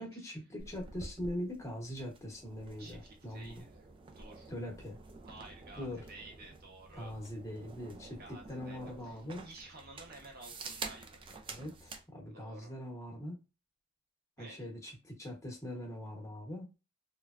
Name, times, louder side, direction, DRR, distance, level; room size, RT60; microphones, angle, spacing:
voice 1, 0.0-3.6 4.5-5.0 5.8-6.0 6.9-9.5 11.5-13.4 14.4-16.7, equal, 15° left, 0.9 m, -42 dB
sound 1, 0.6-12.1, right 3 dB, 25° right, 0.3 m, -49 dB
voice 2, 2.8-3.9 4.1-4.5 5.2-7.1 8.2-11.2 12.3-12.7 14.4-14.7, right 2 dB, 45° right, 0.9 m, -53 dB
3.1 x 2.2 x 2.4 m
head